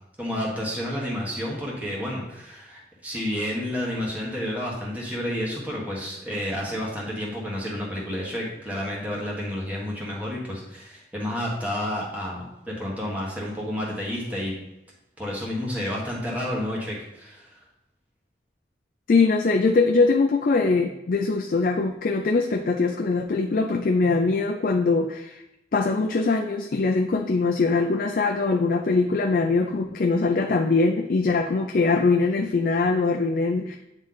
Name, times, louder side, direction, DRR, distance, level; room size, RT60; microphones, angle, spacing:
voice 1, 0.2-14.6 15.2-17.5, left 1 dB, 10° right, -4 dB, 1.5 m, -30 dB
voice 2, 19.1-25.4 25.7-33.8, left 3 dB, 50° left, 3 dB, 0.4 m, -22 dB
8.9 x 3.2 x 4.0 m, 0.89 s
head